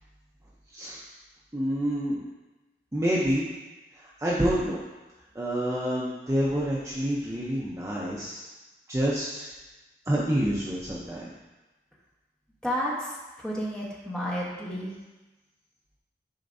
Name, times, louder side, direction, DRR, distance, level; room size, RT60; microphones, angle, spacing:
voice 1, 1.5-2.2 2.9-3.5 3.9-4.8 5.3-8.5 8.9-9.5 10.1-11.3, equal, 15° right, -6 dB, 0.6 m, -28 dB
voice 2, 12.6-15.0, equal, 5° left, -5 dB, 1.1 m, -31 dB
10.0 x 4.4 x 2.6 m, 1.2 s
head